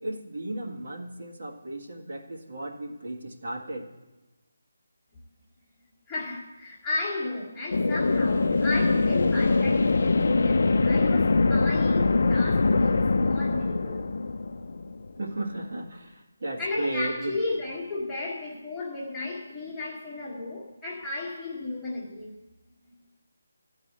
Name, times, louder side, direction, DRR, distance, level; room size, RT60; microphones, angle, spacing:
voice 1, 0.0-3.8 15.2-17.3, right 1 dB, 50° right, 1.7 m, -34 dB
voice 2, 6.1-14.1 16.6-22.4, left 2 dB, 5° left, 1.5 m, -34 dB
sound 1, 7.7-15.2, left 3 dB, 50° left, 0.5 m, -23 dB
13.0 x 4.9 x 8.6 m
hypercardioid pair, 175°, 0 cm